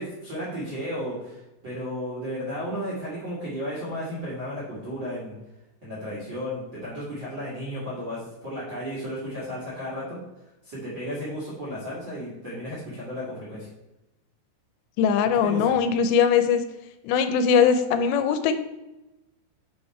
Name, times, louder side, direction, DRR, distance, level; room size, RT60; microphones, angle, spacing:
voice 1, 0.0-5.3 5.8-10.2 10.6-13.7 15.4-15.7, equal, 40° right, -7 dB, 1.7 m, -34 dB
voice 2, 15.0-16.6 17.0-18.6, left 7 dB, 85° left, 9 dB, 2.8 m, -21 dB
7.2 x 4.7 x 4.3 m, 0.97 s
omnidirectional pair, 5.0 m